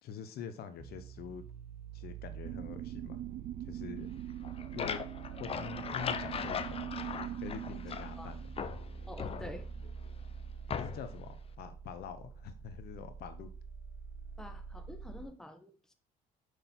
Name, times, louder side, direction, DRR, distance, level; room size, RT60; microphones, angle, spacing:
voice 1, 0.0-1.4 1.9-3.2 3.7-4.1 4.7-5.0 5.4-6.9 7.4-8.4 9.3-9.5 10.7-13.5, left 7 dB, 70° left, 10 dB, 1.0 m, -45 dB
sound 1, 0.8-15.3, right 5 dB, 70° right, 1.3 m, -47 dB
sound 2, 2.4-10.4, right 12 dB, 50° right, 0.4 m, -43 dB
sound 3, 4.3-8.2 8.6-9.9 10.7-11.2, left 7 dB, 35° left, 0.6 m, -39 dB
voice 2, 9.1-9.8 14.4-15.9, left 1 dB, 5° left, 6 dB, 1.1 m, -48 dB
6.4 x 5.3 x 4.3 m, 0.36 s
cardioid pair, 110°, 17 cm